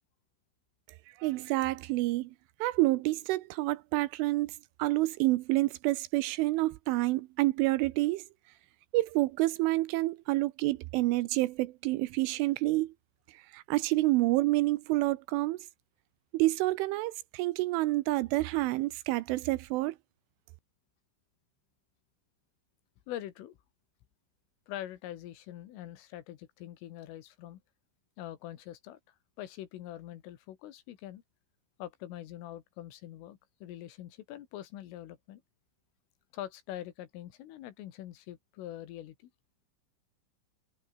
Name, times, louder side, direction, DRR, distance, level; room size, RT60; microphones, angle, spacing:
voice 1, 1.2-2.3 2.6-8.2 8.9-12.9 13.3-15.7 16.3-20.0, right 19 dB, 85° right, 3.0 m, -28 dB
voice 2, 23.1-23.6 24.7-27.6 28.2-31.2 31.8-35.4 36.3-39.3, left 12 dB, 75° left, 4.2 m, -44 dB
omnidirectional pair, 6.0 m